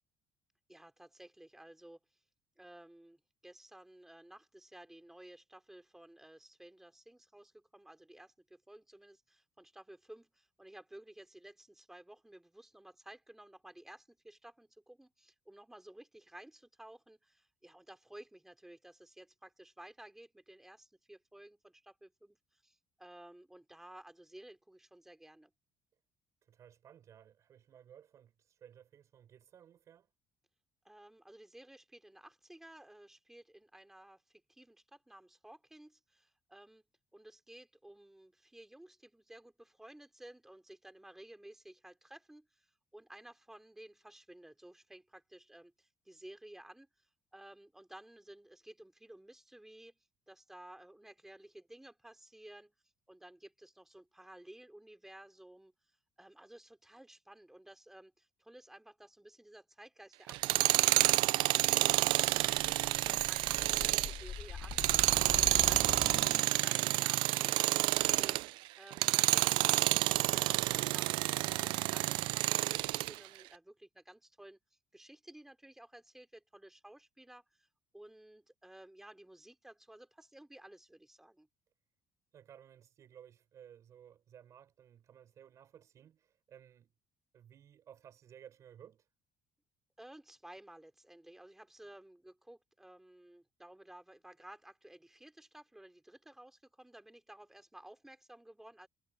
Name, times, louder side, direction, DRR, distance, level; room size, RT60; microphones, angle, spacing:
voice 1, 0.7-2.0 2.6-25.5 30.9-36.8 37.1-47.1 47.3-50.0 50.3-52.7 53.1-55.7 56.2-64.8 65.3-74.6 74.9-77.7 77.9-81.5 90.0-98.9, right 1 dB, 5° right, 3.5 m, -55 dB
voice 2, 26.4-30.1 82.3-86.9 87.3-89.1, right 9 dB, 40° right, 6.4 m, -58 dB
Tools, 60.3-68.5 68.9-73.1, right 19 dB, 85° right, 0.5 m, -29 dB
sound 1, 62.5-66.8, left 7 dB, 35° left, 2.6 m, -43 dB
cardioid pair, 165°, 8 cm